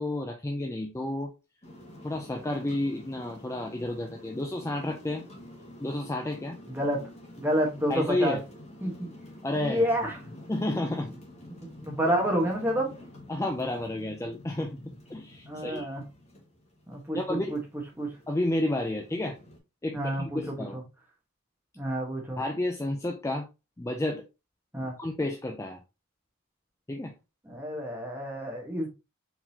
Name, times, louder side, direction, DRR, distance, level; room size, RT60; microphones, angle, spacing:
voice 1, 0.0-1.3 2.0-5.2 5.8-6.6 7.9-8.4 9.4-9.9 10.5-11.1 13.3-15.9 17.1-17.6 18.3-19.4 19.8-20.8 22.4-23.5 23.8-24.2 25.0-25.8 26.9-27.1, left 1 dB, 15° left, 0.4 m, -31 dB
sound 1, 1.6-19.6, left 1 dB, 30° left, 1.4 m, -49 dB
voice 2, 6.7-7.0 7.4-8.4 8.8-9.1 9.5-10.2 11.8-12.9 15.5-16.0 16.9-17.6 18.0-18.2 19.9-20.8 21.7-22.4 24.7-25.0 27.4-28.9, equal, 10° right, 1.2 m, -29 dB
4.6 x 3.8 x 2.8 m
head